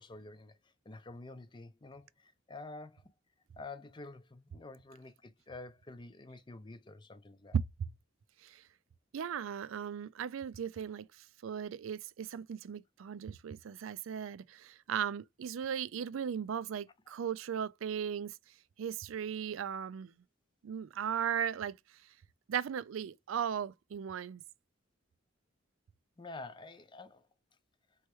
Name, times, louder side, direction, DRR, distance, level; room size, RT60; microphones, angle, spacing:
voice 1, 0.0-3.1 3.5-7.6 26.2-27.3, left 3 dB, 25° left, 0.5 m, -49 dB
voice 2, 9.1-11.1 11.4-18.3 18.8-20.1 20.6-21.8 22.5-24.4, right 8 dB, 85° right, 0.4 m, -37 dB
4.5 x 3.1 x 3.1 m
head